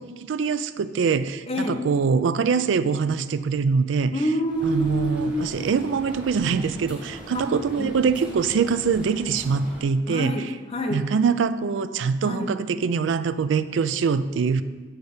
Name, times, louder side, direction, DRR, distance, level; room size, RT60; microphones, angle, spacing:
voice 1, 0.2-4.1 4.6-10.4 10.9-14.6, right 5 dB, 75° right, 13 dB, 0.4 m, -23 dB
voice 2, 1.5-1.8 4.1-5.5 7.3-7.5 7.7-7.9 10.1-11.1 12.2-12.5, equal, 30° left, 4 dB, 0.7 m, -27 dB
sound 1, 4.5-9.8, equal, 5° right, 1.8 m, -40 dB
8.1 x 4.5 x 4.9 m, 1.4 s
head